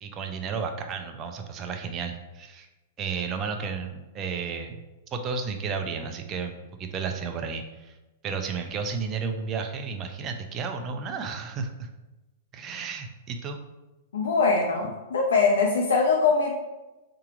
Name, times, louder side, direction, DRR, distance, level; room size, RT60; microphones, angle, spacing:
voice 1, 0.0-2.7 3.0-4.8 5.1-8.0 8.2-11.9 12.5-13.6, right 5 dB, 30° right, 5 dB, 0.6 m, -32 dB
voice 2, 14.1-16.5, left 4 dB, 80° left, -1 dB, 0.6 m, -22 dB
3.8 x 2.9 x 4.8 m, 1.1 s
hypercardioid pair, 110°, 0 cm